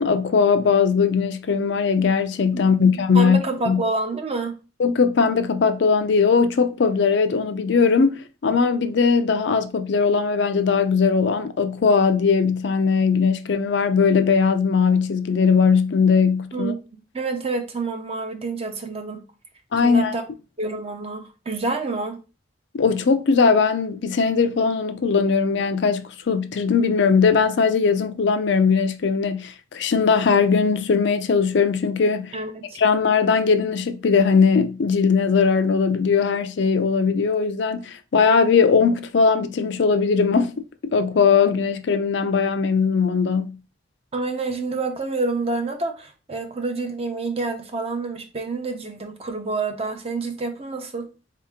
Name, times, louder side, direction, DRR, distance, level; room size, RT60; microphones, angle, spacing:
voice 1, 0.0-3.4 3.7-3.8 4.8-16.7 19.7-20.1 22.7-32.3 32.8-43.6, left 5 dB, 65° left, 0.4 m, -19 dB
voice 2, 2.5-4.6 16.5-16.8 17.1-19.2 19.8-20.2 20.6-22.2 32.3-32.8 44.1-51.1, right 3 dB, 35° right, 0.7 m, -28 dB
4.1 x 2.8 x 3.6 m
head